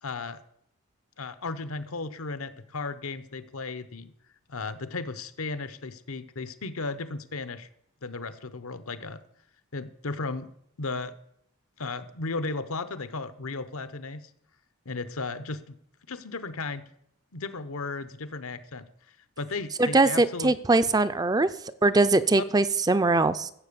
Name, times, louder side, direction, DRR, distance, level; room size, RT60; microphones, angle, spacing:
voice 1, 0.0-0.4 1.2-4.1 4.5-7.7 8.0-9.2 9.7-10.5 10.8-11.1 11.8-14.3 14.8-15.8 16.1-16.8 17.3-18.9 19.4-20.5 22.4-22.5, left 3 dB, 75° left, 13 dB, 0.9 m, -35 dB
voice 2, 19.8-21.5 21.8-23.5, right 2 dB, 15° right, 13 dB, 0.4 m, -22 dB
14.5 x 7.8 x 6.9 m, 0.73 s
head